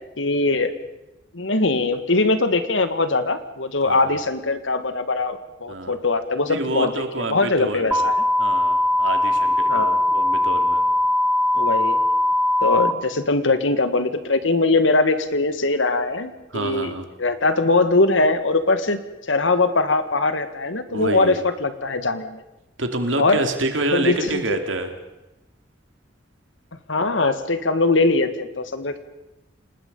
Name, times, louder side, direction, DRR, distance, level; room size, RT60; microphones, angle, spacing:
voice 1, 0.2-0.7 1.3-6.9 7.2-8.2 9.7-10.0 11.5-12.0 12.6-16.9 17.2-19.0 19.3-22.4 23.2-23.5 23.9-24.6 26.9-29.0, left 3 dB, 85° left, 10 dB, 1.8 m, -21 dB
voice 2, 3.8-4.2 5.7-5.9 6.5-8.1 8.4-10.8 16.5-17.1 20.9-21.5 22.8-24.9, right 2 dB, 90° right, 6 dB, 2.7 m, -27 dB
sound 1, 7.9-12.9, left 1 dB, 5° right, 0.8 m, -20 dB
28.5 x 19.5 x 5.5 m, 0.97 s
head